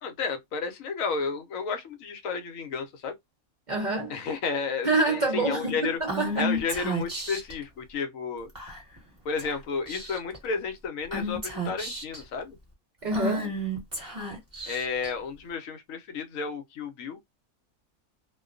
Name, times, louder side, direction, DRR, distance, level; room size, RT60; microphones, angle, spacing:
voice 1, 0.0-3.1 4.1-6.0 6.4-8.5 9.2-12.6 14.7-17.2, left 5 dB, 75° left, 1.0 m, -32 dB
voice 2, 3.7-4.1 4.8-6.5 13.0-13.5, right 2 dB, 50° right, 0.6 m, -26 dB
Female speech woman speaking / Whispering, 6.1-7.5 8.6-9.0 9.4-9.6 9.9-10.4 11.1-12.2 13.1-15.1, right 1 dB, 15° right, 1.2 m, -32 dB
2.3 x 2.2 x 2.4 m
omnidirectional pair, 1.5 m